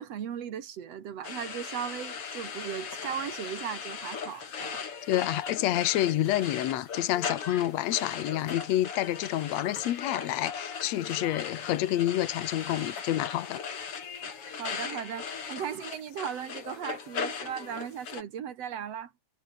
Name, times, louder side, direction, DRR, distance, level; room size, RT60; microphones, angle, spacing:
voice 1, 0.0-4.8 14.2-19.1, right 9 dB, 55° right, 2.6 m, -37 dB
sound 1, 1.2-18.2, left 6 dB, 45° left, 3.5 m, -38 dB
voice 2, 5.1-13.6, left 14 dB, 65° left, 2.2 m, -28 dB
omnidirectional pair, 3.6 m